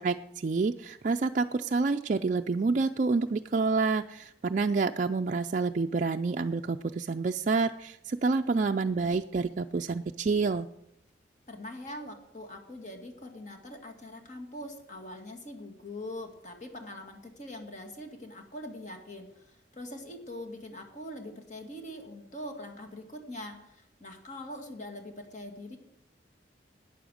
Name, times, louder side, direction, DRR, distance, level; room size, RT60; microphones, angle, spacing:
voice 1, 0.0-10.7, right 4 dB, 45° right, 4 dB, 0.4 m, -28 dB
voice 2, 11.5-25.8, left 1 dB, 40° left, 4 dB, 2.0 m, -43 dB
12.0 x 9.2 x 6.3 m, 0.80 s
head